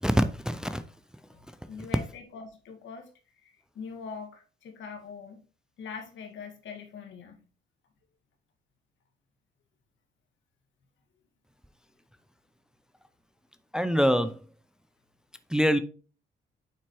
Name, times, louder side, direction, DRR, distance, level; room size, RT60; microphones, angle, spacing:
voice 1, 0.0-0.8 13.7-14.4 15.5-15.8, equal, 5° right, 0.5 m, -24 dB
voice 2, 1.3-3.1 3.4-5.4 5.8-7.4, left 5 dB, 70° left, 1.8 m, -43 dB
9.0 x 4.3 x 3.0 m
cardioid pair, 90°, 20 cm